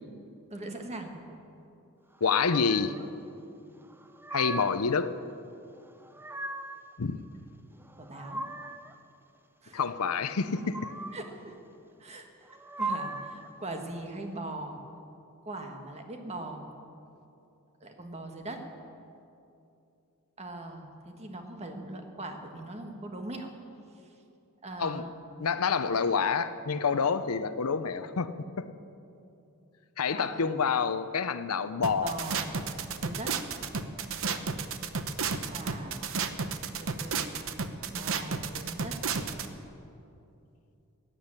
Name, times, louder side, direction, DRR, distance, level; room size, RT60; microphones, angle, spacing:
voice 1, 0.5-1.2 8.0-8.5 9.6-9.8 11.1-11.5 12.0-12.3 12.8-14.8 15.4-16.7 17.8-18.6 20.4-23.5 24.6-25.2 30.1-30.5 32.0-32.5 33.0-33.4 35.5-36.1 36.8-37.2 37.9-39.0, right 2 dB, 30° right, 4 dB, 1.7 m, -40 dB
voice 2, 2.2-2.9 4.3-5.1 7.0-7.2 9.7-10.9 24.8-25.0 25.4-28.3 28.6-28.7 30.0-32.1 34.3-34.4, left 5 dB, 85° left, 12 dB, 0.7 m, -28 dB
sound 1, 2.5-3.1 3.9-4.9 5.9-6.9 7.8-8.9 10.5-11.3 12.4-13.5, right 2 dB, 10° right, 0.6 m, -38 dB
sound 2, 31.8-39.5, right 5 dB, 65° right, 0.9 m, -32 dB
15.5 x 10.0 x 8.9 m, 2.7 s
head